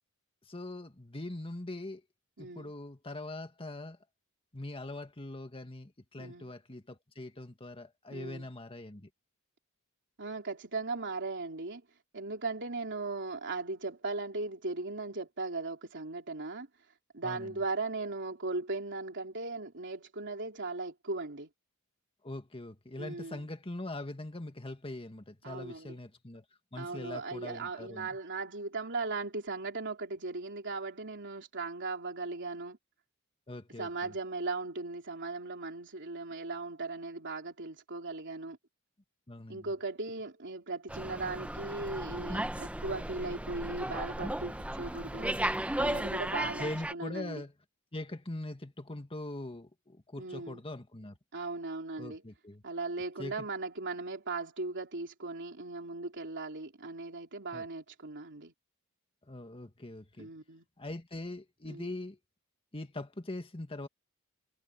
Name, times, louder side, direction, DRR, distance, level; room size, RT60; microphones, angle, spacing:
voice 1, 0.5-2.0 2.4-4.0 4.5-9.1 17.2-17.6 22.2-26.4 26.7-28.1 33.5-34.1 39.3-39.7 46.4-47.5 47.9-51.2 52.0-52.6 53.2-53.5 57.5-57.7 59.3-60.3 60.8-62.2 62.7-63.9, left 2 dB, 25° left, 1.9 m, -42 dB
voice 2, 2.4-2.7 6.2-6.5 8.1-8.5 10.2-11.8 12.1-16.7 17.1-21.5 23.0-23.5 25.4-26.0 26.8-32.8 33.8-38.6 39.5-45.4 45.8-47.4 50.2-50.6 51.3-52.2 52.6-58.5 60.2-60.7 61.7-61.9, right 3 dB, 55° right, 3.5 m, -38 dB
Slam, 40.9-46.9, right 1 dB, 5° right, 1.1 m, -35 dB
head